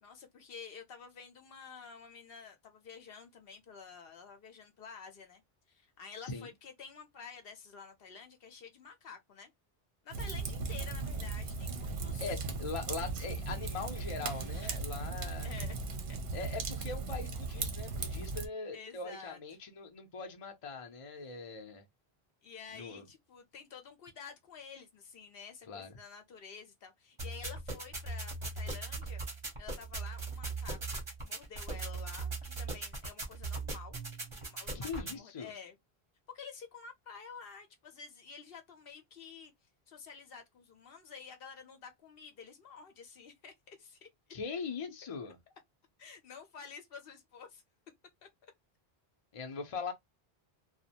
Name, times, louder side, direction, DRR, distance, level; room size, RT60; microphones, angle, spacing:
voice 1, 0.0-5.4 5.7-9.5 10.0-12.4 14.6-14.8 15.4-15.8 16.1-16.2 18.0-18.3 18.7-19.4 22.4-29.2 29.6-34.0 34.3-35.8 36.3-39.5 39.9-44.1 46.0-47.6, left 6 dB, 70° left, 0.9 m, -50 dB
Fire, 10.1-18.5, right 4 dB, 60° right, 0.7 m, -37 dB
voice 2, 12.2-15.5 16.3-21.8 22.7-23.1 25.7-25.9 34.7-35.5 44.3-45.4 49.3-49.9, left 4 dB, 40° left, 0.6 m, -41 dB
sound 1, 27.2-35.2, right 3 dB, 35° right, 0.8 m, -39 dB
2.4 x 2.1 x 2.8 m
omnidirectional pair, 1.0 m